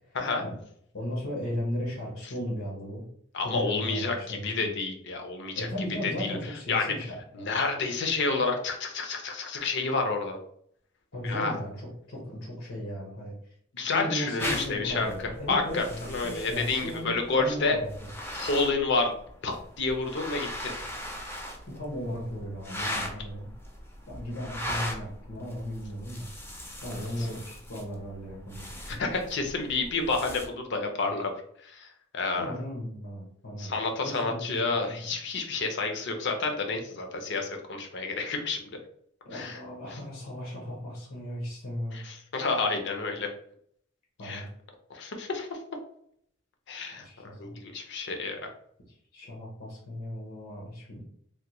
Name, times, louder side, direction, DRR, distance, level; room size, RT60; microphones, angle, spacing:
voice 1, 0.1-0.5 0.9-3.1 3.4-4.7 5.5-7.6 11.1-13.3 13.9-18.1 21.7-23.5 24.1-26.3 26.8-28.7 32.4-33.7 34.0-35.1 39.2-42.0 44.2-44.5 47.0-47.5 48.9-51.0, equal, 85° left, -3 dB, 1.0 m, -36 dB
voice 2, 3.3-5.7 6.0-6.4 6.7-6.9 7.3-10.4 11.2-11.5 13.7-15.1 15.5-17.8 18.3-19.1 19.4-20.8 26.9-27.3 28.9-31.3 31.6-31.9 32.1-32.6 33.6-38.7 39.3-39.6 41.9-43.3 44.2-44.4 44.9-45.6 46.7-47.0 47.4-48.4, left 3 dB, 60° left, 4 dB, 0.6 m, -29 dB
sound 1, 14.4-30.5, left 1 dB, 10° left, 0.5 m, -39 dB
3.4 x 2.2 x 2.9 m, 0.66 s
head